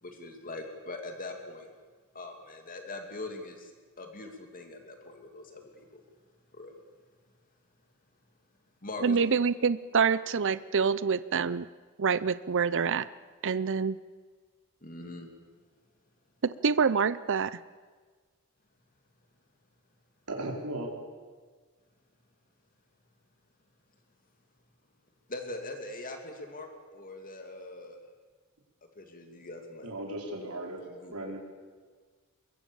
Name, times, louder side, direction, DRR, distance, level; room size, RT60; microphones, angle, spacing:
voice 1, 0.0-1.7 2.1-3.7 4.0-6.0 6.5-6.7 8.8-9.2 14.8-15.3 25.3-28.0 28.9-29.9 30.9-31.1, left 2 dB, 40° left, 4 dB, 2.7 m, -42 dB
voice 2, 9.0-11.7 12.0-13.1 13.4-14.0 16.4-17.6, right 5 dB, 60° right, 16 dB, 0.6 m, -26 dB
voice 3, 20.3-20.9 29.8-30.8 31.1-31.4, right 1 dB, 85° right, 1 dB, 4.8 m, -36 dB
24.0 x 22.0 x 7.1 m, 1.5 s
head